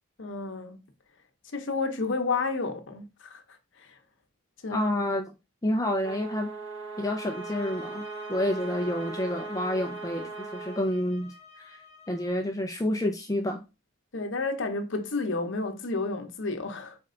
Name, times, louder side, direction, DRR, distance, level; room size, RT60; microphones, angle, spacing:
voice 1, 0.2-0.8 1.5-3.4 3.8-4.0 4.6-4.9 14.1-17.0, left 3 dB, 65° left, 0.8 m, -31 dB
voice 2, 4.7-5.3 5.6-6.5 7.0-11.8 12.1-13.6, left 1 dB, 15° left, 0.5 m, -29 dB
sound 1, 6.0-10.9, right 4 dB, 75° right, 1.3 m, -39 dB
sound 2, 7.1-12.5, left 5 dB, 35° left, 1.1 m, -49 dB
4.4 x 3.2 x 3.7 m
head